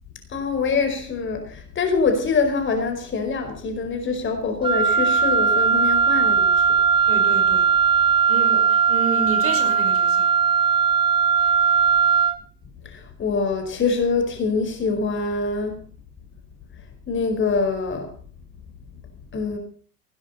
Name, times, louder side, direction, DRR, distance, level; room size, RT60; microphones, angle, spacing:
voice 1, 0.3-6.4 12.9-15.8 17.1-18.1 19.3-19.6, left 4 dB, 25° left, 6 dB, 4.6 m, -24 dB
Wind instrument woodwind instrument, 4.6-12.4, right 6 dB, 10° right, 0.8 m, -19 dB
voice 2, 7.1-7.7 8.3-10.3, right 5 dB, 30° right, 4 dB, 5.9 m, -30 dB
19.5 x 17.5 x 4.2 m, 0.43 s
figure-of-eight pair, 85°, 47 cm